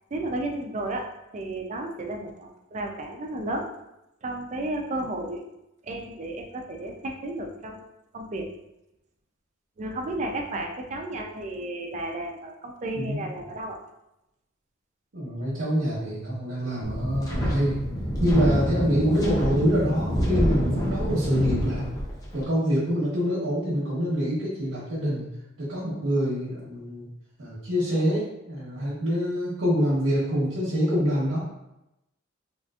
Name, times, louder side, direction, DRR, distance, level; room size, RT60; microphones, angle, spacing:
voice 1, 0.1-1.1 1.3-3.7 4.2-5.4 5.8-7.8 8.1-8.5 9.8-13.8, right 1 dB, 35° right, 2 dB, 0.4 m, -33 dB
voice 2, 15.1-17.8 18.2-21.8 22.3-25.3 25.6-27.1 27.4-31.4, equal, 75° right, -9 dB, 1.0 m, -25 dB
Wind, 16.8-22.4, equal, 20° left, 0.6 m, -27 dB
3.7 x 2.5 x 2.4 m, 0.89 s
head